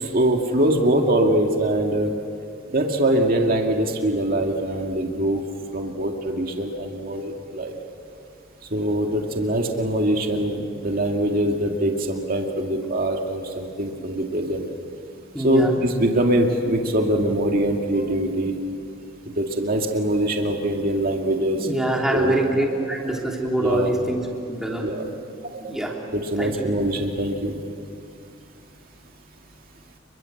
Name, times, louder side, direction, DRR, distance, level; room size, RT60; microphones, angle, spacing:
voice 1, 0.0-2.1 2.7-5.4 5.7-7.8 8.7-14.7 15.4-18.5 19.4-21.7 22.1-22.3 23.6-23.9 24.8-25.1 26.1-27.6, right 1 dB, 50° right, 2 dB, 2.2 m, -23 dB
voice 2, 15.3-15.7 21.6-24.9 25.6-25.9 26.4-26.7, right 1 dB, 5° right, -2 dB, 3.3 m, -25 dB
29.5 x 23.0 x 7.9 m, 2.4 s
head